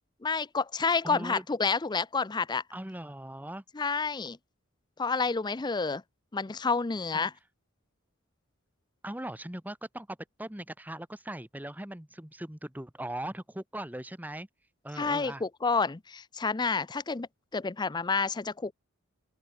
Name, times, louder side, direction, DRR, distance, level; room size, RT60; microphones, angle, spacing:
voice 1, 0.2-2.6 3.7-4.4 5.0-6.0 6.3-7.3 15.0-18.7, left 4 dB, 20° left, 0.5 m, -29 dB
voice 2, 1.0-1.4 2.7-3.6 7.1-7.3 9.0-14.5 14.8-15.4, right 1 dB, 10° right, 1.2 m, -39 dB
open air
head